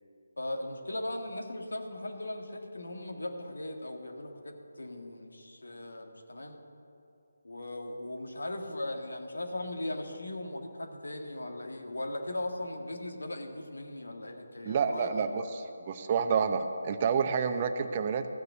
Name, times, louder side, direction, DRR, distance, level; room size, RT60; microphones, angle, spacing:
voice 1, 0.4-6.6 7.4-15.3, left 1 dB, 80° left, 4 dB, 1.7 m, -38 dB
voice 2, 14.6-18.3, right 6 dB, 30° right, 9 dB, 0.7 m, -29 dB
14.5 x 6.7 x 8.2 m, 2.7 s
figure-of-eight pair, 160°, 0 cm